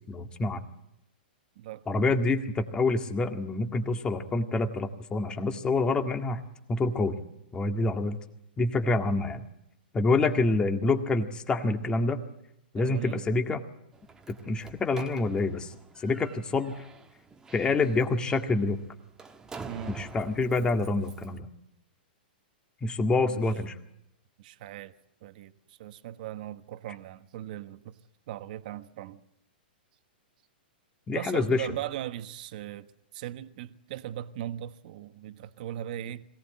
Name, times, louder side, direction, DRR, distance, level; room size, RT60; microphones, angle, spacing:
voice 1, 0.1-0.6 1.9-6.4 6.7-7.1 7.5-8.2 8.6-9.5 9.9-12.2 12.7-13.6 14.3-16.9 17.5-18.8 19.9-21.5 22.8-23.8 31.1-31.7, left 3 dB, 15° left, 1.9 m, -27 dB
voice 2, 1.6-1.9 12.7-13.2 19.6-20.0 23.2-23.4 24.4-24.9 25.2-28.0 28.3-29.2 31.1-32.9 33.1-36.3, right 12 dB, 55° right, 1.3 m, -38 dB
Slam, 13.9-21.4, right 4 dB, 10° right, 1.4 m, -47 dB
22.5 x 17.5 x 8.9 m
hypercardioid pair, 135°, 6 cm